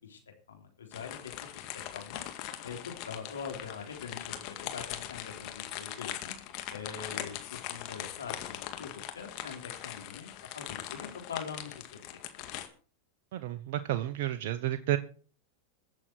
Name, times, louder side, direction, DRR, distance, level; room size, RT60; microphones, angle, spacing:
voice 1, 0.5-2.2 2.6-6.3 6.7-12.0, left 6 dB, 90° left, 4 dB, 3.6 m, -43 dB
sound 1, 0.9-12.7, left 12 dB, 55° left, 2.1 m, -41 dB
voice 2, 13.3-15.0, right 13 dB, 65° right, 9 dB, 0.9 m, -31 dB
22.0 x 7.5 x 4.6 m, 0.41 s
hypercardioid pair, 100°, 0 cm